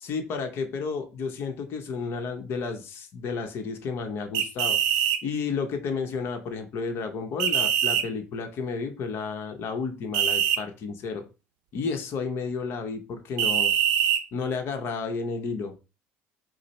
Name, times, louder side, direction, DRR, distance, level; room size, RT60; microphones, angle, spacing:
voice 1, 0.0-4.8 5.2-11.2 11.7-13.7 14.3-15.8, left 5 dB, 55° left, 6 dB, 0.8 m, -32 dB
sound 1, 4.3-5.2 7.4-8.0 10.1-10.6 13.4-14.2, right 9 dB, 85° right, 0.5 m, -23 dB
4.8 x 2.0 x 3.1 m, 0.31 s
supercardioid pair, 95°, 5 cm